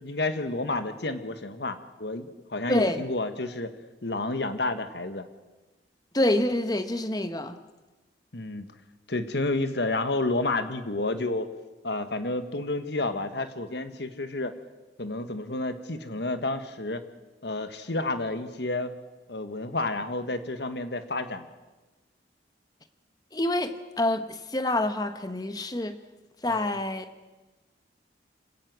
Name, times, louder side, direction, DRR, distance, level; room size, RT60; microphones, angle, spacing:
voice 1, 0.0-3.7 4.0-5.2 8.3-8.7 9.1-11.5 11.8-14.6 15.0-17.0 17.4-18.9 19.3-21.5 26.5-26.8, left 2 dB, 65° left, 9 dB, 1.5 m, -30 dB
voice 2, 2.7-3.1 6.1-7.6 23.3-26.0 26.4-27.1, left 1 dB, 20° left, 10 dB, 1.1 m, -27 dB
25.5 x 17.5 x 6.2 m, 1.2 s
head